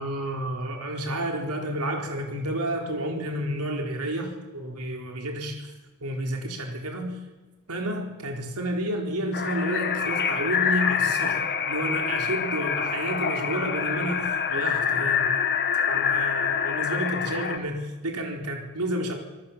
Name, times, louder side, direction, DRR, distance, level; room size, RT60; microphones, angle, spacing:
voice 1, 0.0-5.7 6.0-7.2 7.7-15.3 15.9-19.1, right 1 dB, 85° right, 3 dB, 4.3 m, -30 dB
sound 1, 9.3-17.6, left 7 dB, 50° left, 1.7 m, -26 dB
27.0 x 18.0 x 7.4 m, 1.2 s
head